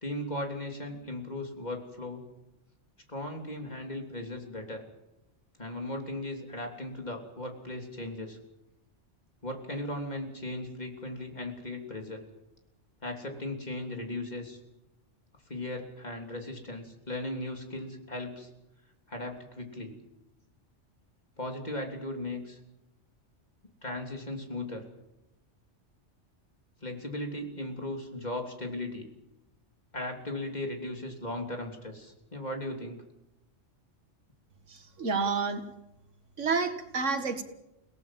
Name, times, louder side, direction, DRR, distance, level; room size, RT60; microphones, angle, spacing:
voice 1, 0.0-2.2 3.1-4.8 5.6-8.4 9.4-12.2 13.0-14.6 15.5-18.5 19.1-19.9 21.4-22.6 23.8-24.9 26.8-29.1 29.9-33.0, left 1 dB, 35° left, 3 dB, 3.4 m, -37 dB
voice 2, 34.7-35.6 36.4-37.4, right 4 dB, 75° right, 7 dB, 2.1 m, -29 dB
29.5 x 18.5 x 7.6 m, 0.92 s
omnidirectional pair, 1.3 m